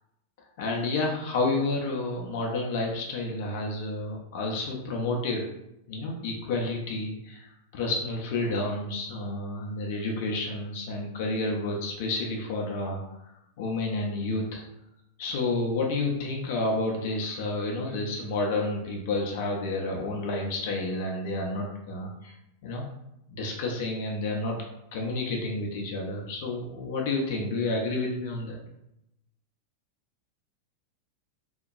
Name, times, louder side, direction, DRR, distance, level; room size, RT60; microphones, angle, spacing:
voice 1, 0.6-5.4 5.9-13.0 13.6-14.6 15.2-22.3 22.6-22.8 23.3-24.6 24.9-28.6, left 2 dB, 50° left, 0 dB, 0.5 m, -30 dB
2.9 x 2.2 x 2.5 m, 0.85 s
figure-of-eight pair, 90°, 0 cm